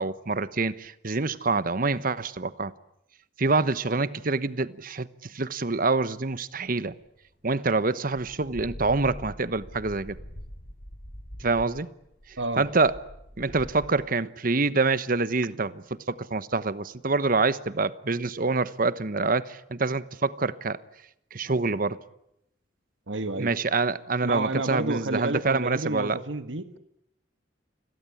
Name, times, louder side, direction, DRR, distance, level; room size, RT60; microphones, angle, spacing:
voice 1, 0.0-2.7 3.4-6.9 7.4-10.2 11.4-11.9 12.6-12.9 13.4-20.8 21.3-22.0 23.4-26.2, right 3 dB, 50° right, 1.1 m, -26 dB
sound 1, 7.0-7.1 7.8-7.9 8.1-13.9, equal, 60° left, 5.7 m, -43 dB
voice 2, 23.1-23.5 24.2-26.8, right 2 dB, 90° right, 1.6 m, -30 dB
29.0 x 22.0 x 8.6 m
head